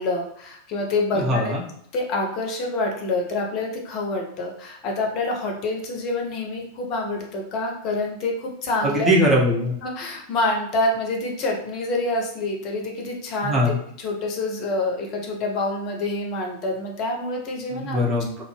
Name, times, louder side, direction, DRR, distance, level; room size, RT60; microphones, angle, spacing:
voice 1, 0.0-1.5 1.9-9.1 9.8-13.6 14.0-18.0, left 2 dB, 35° left, 1 dB, 0.6 m, -27 dB
voice 2, 1.1-1.6 8.8-9.7 13.4-13.8 17.7-18.4, equal, 20° right, -3 dB, 0.6 m, -21 dB
2.0 x 2.0 x 3.1 m, 0.68 s
figure-of-eight pair, 90°, 0 cm